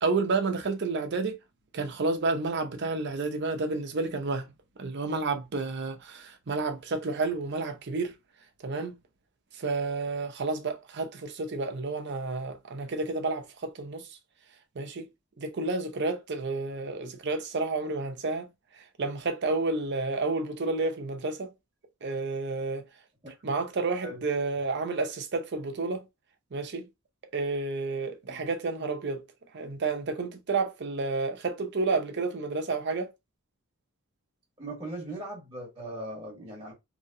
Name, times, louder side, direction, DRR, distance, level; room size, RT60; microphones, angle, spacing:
voice 1, 0.0-1.3 1.7-4.5 4.8-8.1 8.6-9.0 9.5-14.2 14.8-15.0 15.4-18.5 18.7-21.5 22.0-22.9 23.4-26.0 26.5-26.9 27.3-29.2 29.5-33.1, right 3 dB, 50° right, 0.6 m, -30 dB
voice 2, 34.6-36.7, right 1 dB, 20° right, 1.2 m, -39 dB
2.8 x 2.7 x 2.6 m
head